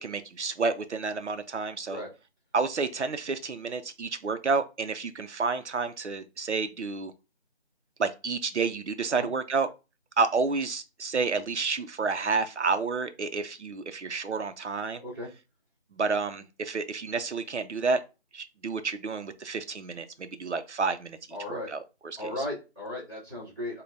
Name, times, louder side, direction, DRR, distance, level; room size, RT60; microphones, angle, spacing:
voice 1, 0.0-2.0 2.5-7.1 8.0-9.7 10.2-15.0 15.9-18.0 18.3-21.2 21.5-21.8 22.2-22.3, right 4 dB, 80° right, 0.6 m, -30 dB
voice 2, 15.0-15.3 21.3-21.7 22.2-23.8, left 1 dB, 5° left, 1.9 m, -36 dB
5.1 x 2.2 x 2.6 m
figure-of-eight pair, 175°, 34 cm